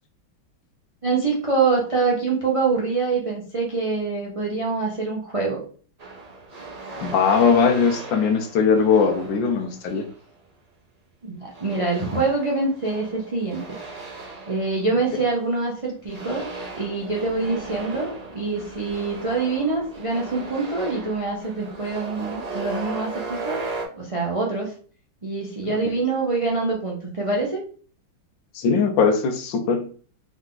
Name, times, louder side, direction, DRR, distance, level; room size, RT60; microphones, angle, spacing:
voice 1, 1.0-5.6 11.2-13.6 14.5-16.4 16.8-23.6 23.9-24.7 25.2-27.6, right 3 dB, 55° right, -2 dB, 0.3 m, -25 dB
sound 1, 6.0-10.2 11.5-15.7 16.1-23.8, right 3 dB, 30° right, 0.8 m, -37 dB
voice 2, 7.0-10.0 28.5-29.9, left 5 dB, 75° left, 6 dB, 1.4 m, -20 dB
3.7 x 3.5 x 3.8 m, 0.42 s
omnidirectional pair, 2.1 m